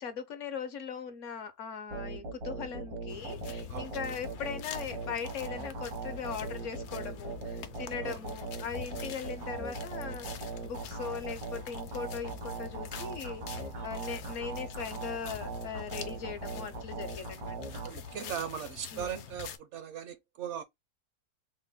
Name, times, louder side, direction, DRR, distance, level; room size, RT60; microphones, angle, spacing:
voice 1, 0.0-17.6 18.9-19.1, left 6 dB, 60° left, 0.9 m, -40 dB
sound 1, 1.9-18.5, right 3 dB, 85° right, 1.7 m, -40 dB
sound 2, 3.1-19.6, left 10 dB, 85° left, 1.2 m, -46 dB
voice 2, 17.7-20.6, right 8 dB, 65° right, 0.7 m, -39 dB
3.9 x 2.1 x 3.4 m
omnidirectional pair, 1.6 m